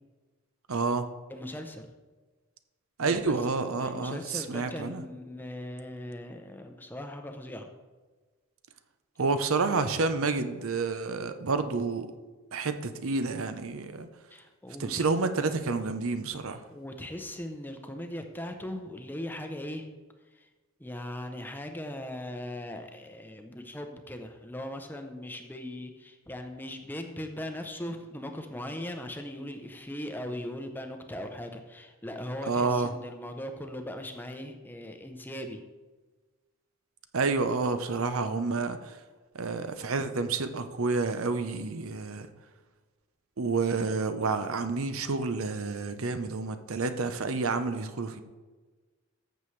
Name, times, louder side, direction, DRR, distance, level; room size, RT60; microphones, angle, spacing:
voice 1, 0.7-1.1 3.0-5.0 9.2-12.1 12.5-14.1 14.8-16.6 32.5-32.9 37.1-39.0 39.3-42.3 43.4-48.2, right 4 dB, 70° right, 9 dB, 0.7 m, -29 dB
voice 2, 1.3-1.9 3.0-3.5 3.8-7.7 14.3-15.1 16.7-19.9 20.3-20.5 20.8-35.6, left 1 dB, 10° left, 5 dB, 0.6 m, -39 dB
14.0 x 6.9 x 3.2 m, 1.3 s
head